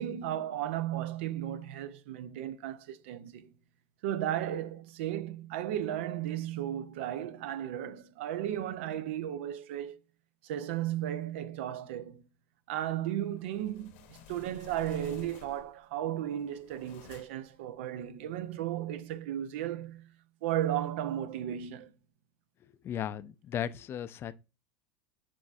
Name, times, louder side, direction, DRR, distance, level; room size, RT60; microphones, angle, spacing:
voice 1, 0.0-3.5 4.0-10.0 10.4-12.2 12.7-20.1 20.4-21.9, right 11 dB, 70° right, 0.5 m, -35 dB
sound 1, 13.4-15.8 16.3-17.5, left 5 dB, 65° left, 0.9 m, -53 dB
voice 2, 22.8-24.3, left 10 dB, 35° left, 0.4 m, -36 dB
7.2 x 2.5 x 2.4 m
hypercardioid pair, 95°, 7 cm